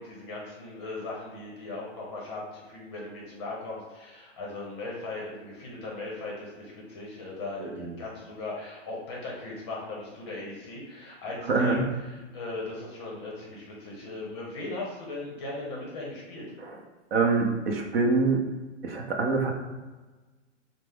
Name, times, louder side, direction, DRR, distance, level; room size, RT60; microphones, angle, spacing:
voice 1, 0.0-16.5, left 2 dB, 20° left, -3 dB, 0.7 m, -38 dB
voice 2, 11.5-11.8 16.6-16.7 17.1-18.4 18.8-19.5, right 4 dB, 50° right, 1 dB, 0.8 m, -25 dB
5.5 x 2.0 x 3.4 m, 1.2 s
hypercardioid pair, 165°, 37 cm